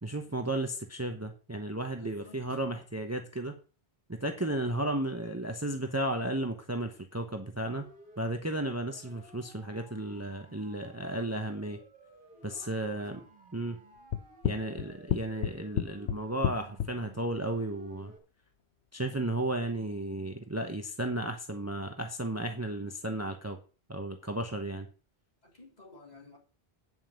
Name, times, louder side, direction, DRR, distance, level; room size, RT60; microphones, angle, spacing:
voice 1, 0.0-3.6 4.1-7.9 8.2-11.8 12.4-13.2 13.5-13.8 14.4-18.1 18.9-23.6 23.9-24.9, right 1 dB, 15° right, 1.0 m, -34 dB
voice 2, 2.0-2.5 12.3-13.3 25.4-26.4, equal, 40° left, 3.8 m, -52 dB
Siren, 7.8-18.2, right 1 dB, 55° right, 2.2 m, -56 dB
sound 1, 14.1-16.9, left 10 dB, 85° left, 1.0 m, -30 dB
9.1 x 5.7 x 7.7 m
omnidirectional pair, 1.1 m